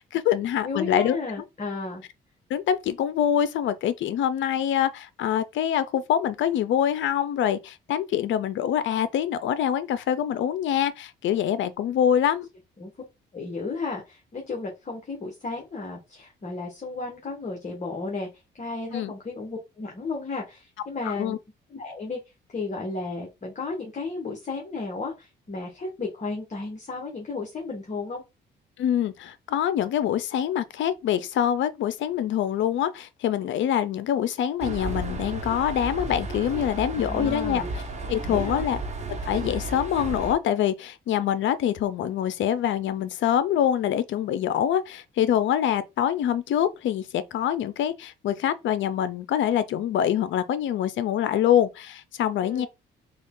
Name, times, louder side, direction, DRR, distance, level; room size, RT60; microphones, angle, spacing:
voice 1, 0.0-1.2 2.5-12.5 18.9-19.1 21.0-21.4 28.8-37.6 38.1-38.8 39.2-52.7, left 10 dB, 70° left, 0.5 m, -25 dB
voice 2, 0.6-2.0 12.8-12.9 13.3-18.3 18.5-21.4 21.7-22.2 22.5-28.2 37.0-37.7 38.2-38.6 52.4-52.7, left 3 dB, 35° left, 1.2 m, -33 dB
sound 1, 34.6-40.3, right 2 dB, 35° right, 1.0 m, -33 dB
3.7 x 2.3 x 3.6 m
cardioid pair, 90°, 20 cm